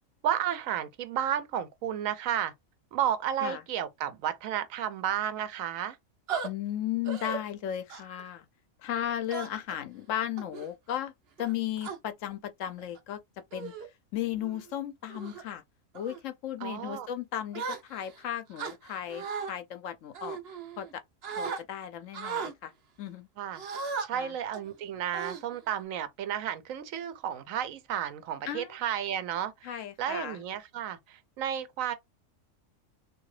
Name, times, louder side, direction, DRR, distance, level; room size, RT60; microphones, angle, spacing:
voice 1, 0.2-2.5 2.9-6.0 16.6-17.1 23.4-23.6 24.0-29.7 30.0-31.9, right 10 dB, 85° right, 1.0 m, -32 dB
dying gasps, 6.3-6.5 7.1-7.4 7.9-8.2 9.3-9.7 10.4-10.7 11.4-12.0 12.8-13.0 13.5-13.9 14.4-14.6 15.1-15.4 15.9-16.2 17.5-18.2 18.6-19.5 20.1-20.9 21.2-21.6 22.1-22.5 23.5-24.1 24.5-24.7 25.1-25.8, right 5 dB, 55° right, 0.9 m, -36 dB
voice 2, 6.4-8.5 8.8-11.1 11.4-13.2 13.5-13.7 14.1-15.6 15.9-20.4 20.8-21.0 21.4-22.7 23.0-23.3 24.1-24.4 28.4-28.8 29.6-30.4, left 11 dB, 75° left, 1.0 m, -35 dB
3.7 x 2.7 x 3.1 m
omnidirectional pair, 1.4 m